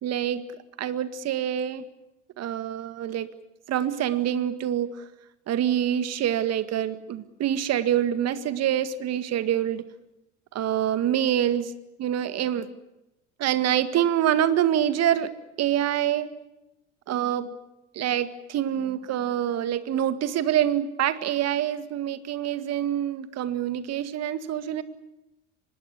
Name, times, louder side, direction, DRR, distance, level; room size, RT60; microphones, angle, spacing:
voice 1, 0.0-0.5 0.8-1.8 2.4-3.3 3.7-4.9 5.5-9.8 10.5-11.7 12.0-12.7 13.4-15.3 15.6-16.3 17.1-17.5 17.9-24.8, right 10 dB, 45° right, 11 dB, 2.0 m, -26 dB
25.0 x 21.0 x 8.4 m, 0.93 s
figure-of-eight pair, 65°, 35 cm